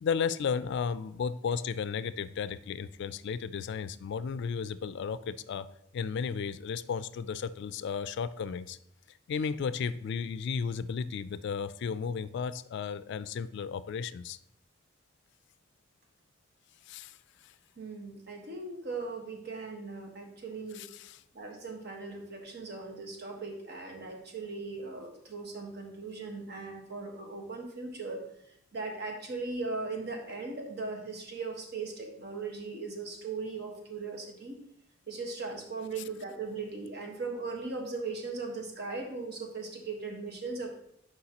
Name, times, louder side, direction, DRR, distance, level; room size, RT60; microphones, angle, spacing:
voice 1, 0.0-5.7 5.9-8.8 9.1-14.4 16.9-17.5 20.7-21.2, left 6 dB, 60° left, 14 dB, 0.3 m, -34 dB
voice 2, 17.8-20.8 21.3-34.6 35.1-40.7, right 3 dB, 55° right, 1 dB, 1.4 m, -38 dB
10.5 x 4.8 x 2.9 m, 0.74 s
head